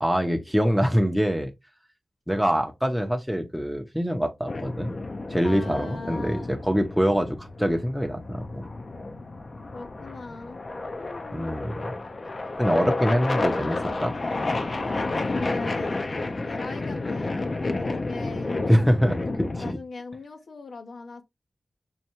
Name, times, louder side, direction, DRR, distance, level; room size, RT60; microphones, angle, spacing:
voice 1, 0.0-1.5 2.3-5.0 5.3-8.7 11.3-11.9 12.6-14.1 18.7-19.8, equal, ahead, 0.6 m, -24 dB
sound 1, 4.5-19.7, left 2 dB, 50° left, 0.5 m, -31 dB
voice 2, 5.4-6.6 9.7-10.6 11.0-11.6 14.9-16.0 16.4-17.3 17.7-18.6 19.6-21.2, left 3 dB, 80° left, 0.8 m, -39 dB
5.4 x 2.2 x 2.9 m
cardioid pair, 55°, 0 cm